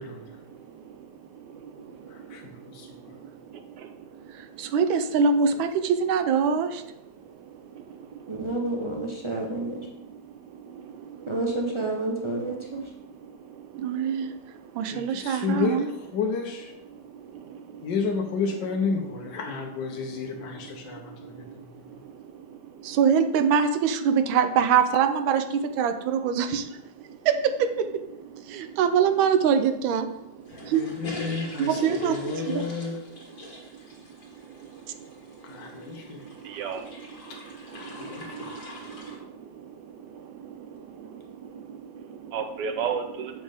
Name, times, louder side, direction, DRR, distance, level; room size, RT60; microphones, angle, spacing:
voice 1, 0.0-4.7 7.3-8.3 10.4-11.3 13.3-14.3 14.9-15.4 17.0-17.9 19.9-23.0 27.1-27.2 28.5-28.8 30.6-30.7 33.3-33.8 34.3-43.4, right 7 dB, 75° right, 7 dB, 1.1 m, -40 dB
voice 2, 2.1-3.2 14.8-16.7 17.8-21.7 30.7-33.0 35.4-36.2 38.0-38.3, left 5 dB, 70° left, 1 dB, 1.4 m, -31 dB
voice 3, 4.3-6.8 13.7-14.3 14.7-15.9 22.8-26.7 27.2-28.0 28.5-30.1 30.7-30.8 31.6-32.7, right 7 dB, 90° right, 8 dB, 1.4 m, -23 dB
voice 4, 8.3-9.9 11.3-12.9, right 2 dB, 40° right, -2 dB, 0.4 m, -29 dB
sound 1, 30.5-39.2, left 1 dB, 45° left, 2.0 m, -42 dB
7.2 x 6.2 x 3.5 m, 0.86 s
omnidirectional pair, 2.1 m